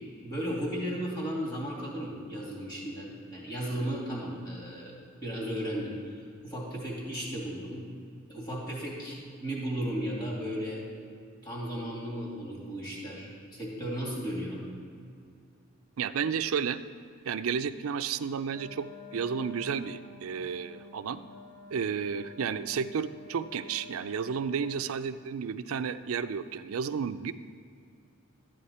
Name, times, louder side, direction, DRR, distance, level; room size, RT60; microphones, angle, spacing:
voice 1, 0.2-4.9 5.2-6.1 6.4-7.8 8.3-10.8 11.4-14.6, equal, 20° left, -4 dB, 2.7 m, -35 dB
voice 2, 16.0-16.8 17.3-21.2 21.7-27.3, right 6 dB, 90° right, 12 dB, 0.4 m, -32 dB
Wind instrument woodwind instrument, 18.5-25.1, left 3 dB, 70° left, 1.9 m, -50 dB
12.5 x 8.9 x 4.3 m, 2.3 s
head